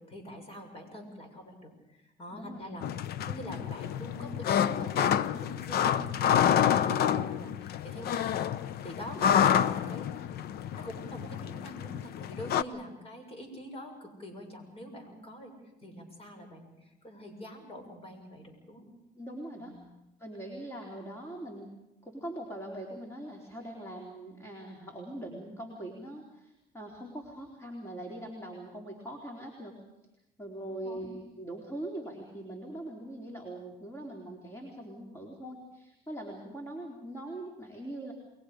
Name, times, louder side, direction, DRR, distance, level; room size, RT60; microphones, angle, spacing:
voice 1, 0.0-2.8 3.2-10.4 10.7-15.5 15.8-18.9 19.6-19.8 30.8-31.1, equal, 35° left, 4 dB, 7.0 m, -45 dB
voice 2, 2.3-2.7 19.2-19.7 20.2-21.7 22.0-29.8 30.4-38.1, right 1 dB, 15° left, 0 dB, 3.9 m, -42 dB
Ferry pontoon pier squeaking in light waves rubber on metal, 2.8-12.6, left 9 dB, 70° left, 0.8 m, -28 dB
29.5 x 22.5 x 5.1 m, 0.91 s
cardioid pair, 110°, 17 cm